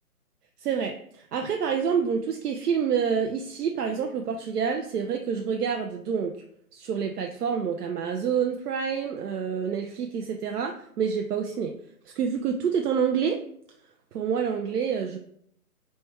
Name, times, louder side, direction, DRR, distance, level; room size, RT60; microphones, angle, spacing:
voice 1, 0.6-6.4 6.7-11.7 12.2-13.4 14.1-15.2, right 7 dB, 80° right, 4 dB, 0.5 m, -27 dB
3.4 x 2.2 x 4.3 m, 0.66 s
hypercardioid pair, 155°, 46 cm